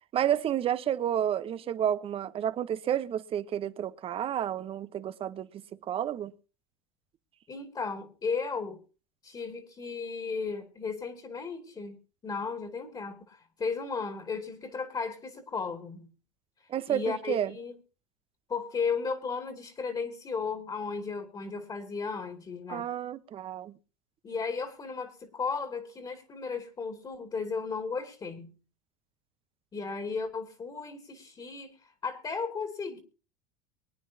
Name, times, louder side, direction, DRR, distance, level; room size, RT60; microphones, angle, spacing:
voice 1, 0.1-6.3 16.7-17.5 22.7-23.8, right 10 dB, 35° right, 1.0 m, -30 dB
voice 2, 7.5-8.8 9.2-12.0 12.2-16.1 16.9-17.8 18.5-22.9 24.2-28.5 29.7-31.7 32.0-33.0, left 5 dB, 25° left, 2.5 m, -35 dB
23.5 x 9.3 x 2.8 m
supercardioid pair, 110°, 17 cm